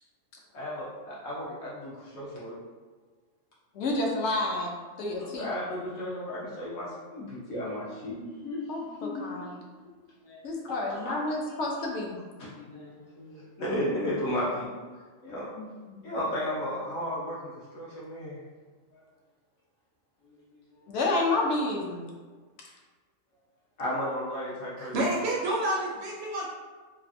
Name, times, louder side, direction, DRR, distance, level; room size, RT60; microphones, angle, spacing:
voice 1, 0.5-2.5 5.2-8.6 9.0-9.5 10.2-10.4 10.7-11.2 12.4-14.7 15.2-18.4 18.9-19.0 23.8-25.2, left 1 dB, 85° left, -7 dB, 1.4 m, -34 dB
voice 2, 3.7-4.7 5.0-5.5 8.7-9.6 10.4-12.2 20.9-22.0, left 2 dB, 65° left, -1 dB, 0.8 m, -29 dB
voice 3, 24.8-26.5, right 1 dB, 65° right, -3 dB, 0.7 m, -29 dB
3.2 x 2.4 x 2.6 m, 1.4 s
omnidirectional pair, 1.4 m